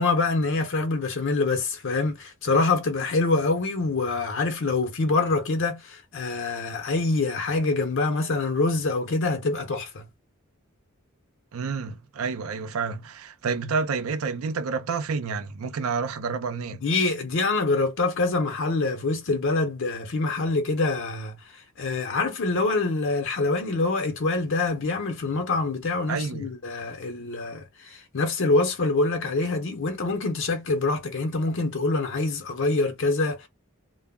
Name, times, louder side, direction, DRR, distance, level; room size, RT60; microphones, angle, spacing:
voice 1, 0.0-10.0 16.8-33.5, left 3 dB, 65° left, 0.7 m, -25 dB
voice 2, 11.5-16.8 26.1-26.5, right 5 dB, 80° right, 0.5 m, -29 dB
2.2 x 2.0 x 3.5 m
head